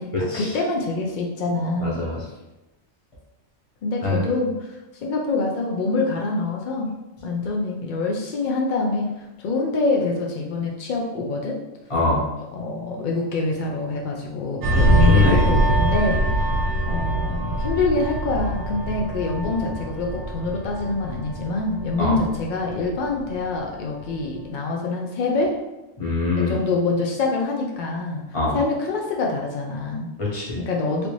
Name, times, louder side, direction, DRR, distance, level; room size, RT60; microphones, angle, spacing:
voice 1, 0.0-2.0 3.8-6.9 7.2-9.1 9.4-11.6 12.5-16.6 16.9-25.5 26.3-28.3 28.5-30.1 30.5-31.1, left 3 dB, 90° left, -1 dB, 0.4 m, -25 dB
voice 2, 1.8-2.2 4.0-4.2 11.9-12.2 14.7-15.4 22.0-22.2 26.0-26.5 28.3-28.5 30.2-30.6, left 2 dB, 30° left, -4 dB, 0.8 m, -23 dB
sound 1, 14.6-23.7 24.0-24.3, right 1 dB, 85° right, 1.0 m, -23 dB
3.3 x 2.5 x 3.0 m, 1.0 s
omnidirectional pair, 1.4 m